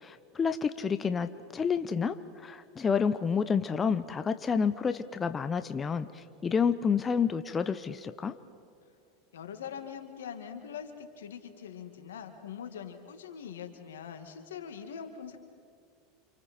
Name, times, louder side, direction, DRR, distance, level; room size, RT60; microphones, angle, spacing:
voice 1, 0.0-8.3, left 6 dB, 25° left, 11 dB, 0.9 m, -29 dB
voice 2, 9.3-15.4, left 7 dB, 85° left, 6 dB, 2.1 m, -43 dB
29.5 x 27.5 x 4.5 m, 2.3 s
hypercardioid pair, 95°, 0 cm